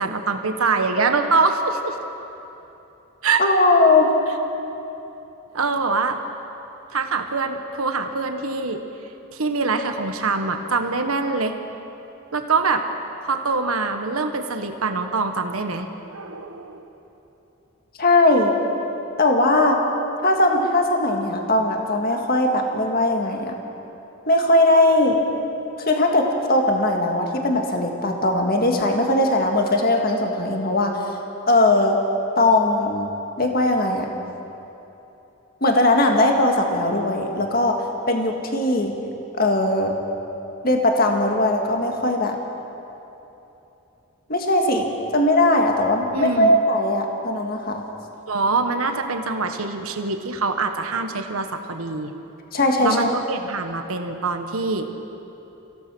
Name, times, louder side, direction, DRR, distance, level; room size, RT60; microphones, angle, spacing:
voice 1, 0.0-2.0 3.2-3.4 5.5-6.2 6.9-8.8 9.3-11.6 12.3-12.8 13.2-16.8 46.1-46.5 48.3-52.1 52.8-55.0, right 4 dB, 90° right, 6 dB, 1.4 m, -24 dB
voice 2, 3.4-4.1 18.0-18.5 19.2-19.8 20.2-23.6 24.3-25.2 25.9-31.1 31.5-32.0 32.4-33.1 33.4-34.1 35.6-38.9 39.4-39.9 40.6-42.4 44.3-47.8 52.5-53.1, left 2 dB, 45° left, 2 dB, 1.9 m, -19 dB
25.5 x 16.5 x 6.3 m, 3.0 s
head